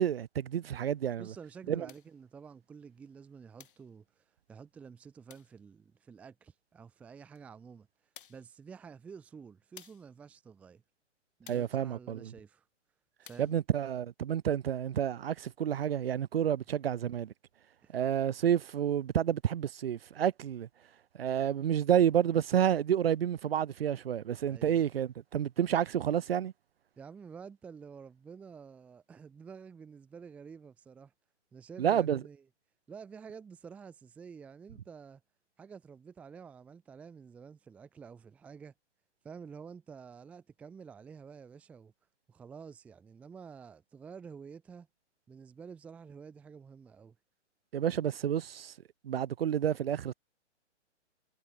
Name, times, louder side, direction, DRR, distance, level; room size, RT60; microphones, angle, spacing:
voice 1, 0.0-1.3 1.7-1.9 11.5-12.3 13.4-17.3 17.9-20.7 21.2-26.5 31.8-32.2 47.7-48.7 49.0-50.1, right 9 dB, 55° right, 0.5 m, -29 dB
voice 2, 1.2-7.9 8.3-10.8 11.4-12.7 13.2-13.6 17.8-18.0 24.5-24.8 27.0-31.1 31.5-32.4 32.9-35.2 35.6-38.7 39.2-41.9 42.3-44.9 45.3-47.2, right 6 dB, 5° right, 1.2 m, -50 dB
sound 1, 1.9-2.2 3.6-3.9 5.3-5.6 7.3-7.4 8.1-8.5 9.8-10.1 11.4-11.8 13.2-13.6, left 9 dB, 45° left, 2.7 m, -54 dB
hypercardioid pair, 170°, 36 cm